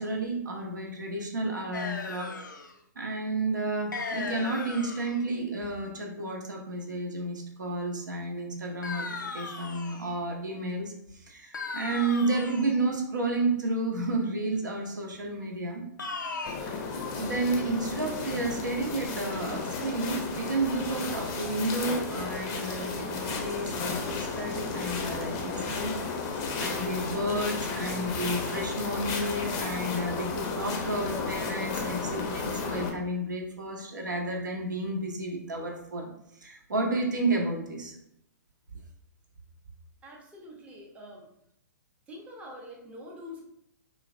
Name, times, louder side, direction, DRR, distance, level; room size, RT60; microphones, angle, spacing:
voice 1, 0.0-2.3 3.0-9.1 9.3-10.9 11.3-15.8 17.2-36.1 36.4-37.9, right 2 dB, 80° right, 1 dB, 0.6 m, -31 dB
sound 1, 1.7-2.7 3.9-5.2 8.8-10.1 11.5-12.8 16.0-16.6, left 4 dB, 90° left, 0.4 m, -37 dB
sound 2, 16.5-32.9, left 4 dB, 30° left, 0.5 m, -33 dB
voice 2, 40.0-41.3 42.1-43.5, left 1 dB, 15° right, -1 dB, 0.5 m, -45 dB
3.1 x 2.0 x 2.4 m, 0.76 s
hypercardioid pair, 120°, 10 cm